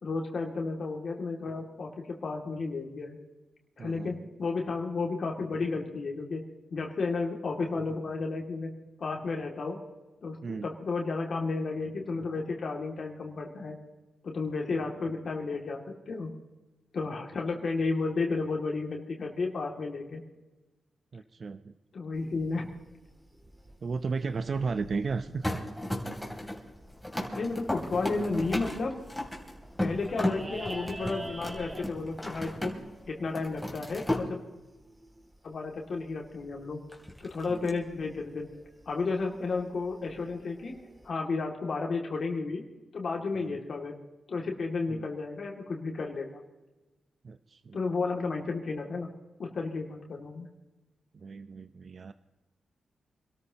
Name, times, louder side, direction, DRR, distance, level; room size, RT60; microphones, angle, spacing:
voice 1, 0.0-3.2 3.8-6.4 6.7-8.7 9.0-9.8 10.2-13.8 14.2-16.3 16.9-20.2 21.9-22.7 27.4-29.0 29.8-32.8 33.1-34.4 35.4-36.8 37.2-38.5 38.9-40.8 41.0-42.6 42.9-43.9 44.3-46.3 47.7-49.1 49.4-50.5, left 3 dB, 60° left, 1 dB, 2.5 m, -32 dB
voice 2, 3.8-4.1 10.4-10.7 21.1-21.7 23.8-25.6 37.5-37.8 43.4-43.6 44.9-45.0 47.2-47.8 51.1-52.1, right 4 dB, 55° right, 10 dB, 0.7 m, -35 dB
sound 1, 22.1-41.1, right 1 dB, 20° right, 2.6 m, -49 dB
sound 2, 25.4-33.0 33.3-34.3 36.9-37.7, left 1 dB, 5° left, 3.2 m, -35 dB
27.0 x 13.5 x 3.0 m, 1.1 s
cardioid pair, 70°, 0 cm